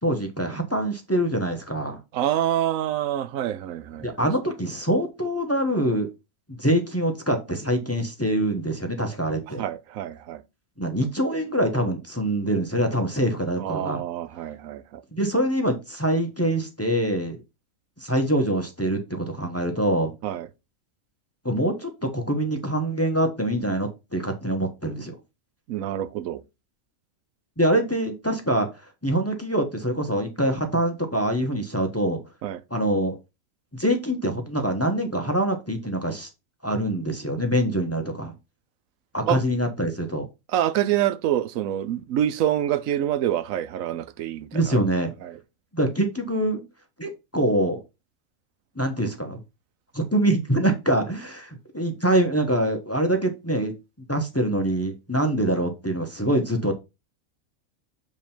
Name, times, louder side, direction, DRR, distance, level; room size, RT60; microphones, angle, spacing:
voice 1, 0.0-2.0 4.0-6.1 6.5-9.6 10.8-14.0 15.1-17.4 18.0-20.1 21.4-25.2 27.6-32.2 32.7-33.2 33.7-36.3 36.6-38.3 39.1-40.3 44.5-45.1 45.7-46.6 47.0-47.8 48.7-49.4 49.9-56.7, right 1 dB, 10° left, 0.9 m, -24 dB
voice 2, 2.1-4.3 9.6-10.4 13.6-15.0 20.2-20.5 25.7-26.4 32.4-32.6 39.2-39.4 40.5-44.8 45.2-45.4, right 11 dB, 85° right, 1.0 m, -26 dB
7.2 x 3.7 x 4.3 m
omnidirectional pair, 1.4 m